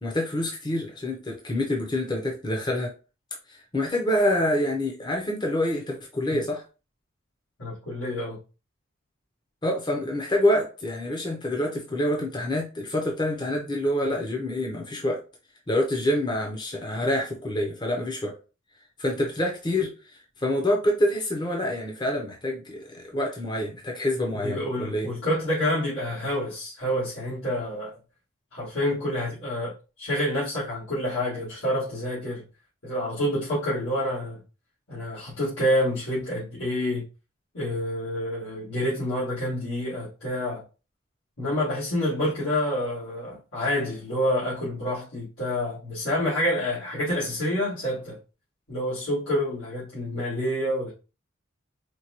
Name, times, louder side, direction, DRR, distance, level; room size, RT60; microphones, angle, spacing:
voice 1, 0.0-2.9 3.5-6.6 9.6-15.2 15.7-18.4 19.0-25.1, left 1 dB, 20° left, 0.7 m, -27 dB
voice 2, 7.6-8.4 24.3-28.0 28.5-29.7 30.0-32.4 32.8-34.4 34.9-37.0 37.5-40.6 41.4-48.2 48.7-50.9, left 1 dB, 80° left, 2.0 m, -28 dB
4.5 x 2.2 x 2.9 m
head